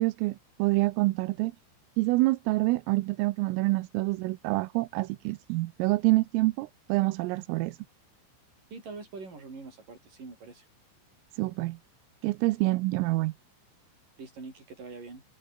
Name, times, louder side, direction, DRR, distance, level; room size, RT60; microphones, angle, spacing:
voice 1, 0.0-1.5 2.0-7.8 11.4-11.8 12.2-13.3, right 21 dB, 85° right, 3.5 m, -27 dB
voice 2, 8.7-10.7 14.2-15.2, right 4 dB, 40° right, 9.2 m, -44 dB
open air
omnidirectional pair, 5.9 m